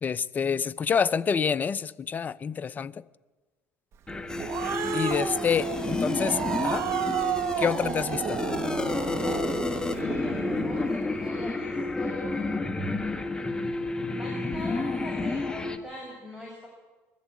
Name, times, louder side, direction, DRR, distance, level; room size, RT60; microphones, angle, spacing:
voice 1, 0.0-2.9 4.9-6.8 7.6-8.4, left 6 dB, 30° left, 0.7 m, -27 dB
sound 1, 4.1-15.8, left 3 dB, 15° left, 1.5 m, -30 dB
Growling, 4.1-10.9, right 9 dB, 55° right, 1.5 m, -32 dB
voice 2, 9.8-12.6 12.8-13.8 14.1-16.7, equal, 10° right, 6.2 m, -42 dB
21.0 x 14.5 x 8.5 m
cardioid pair, 105°, 6 cm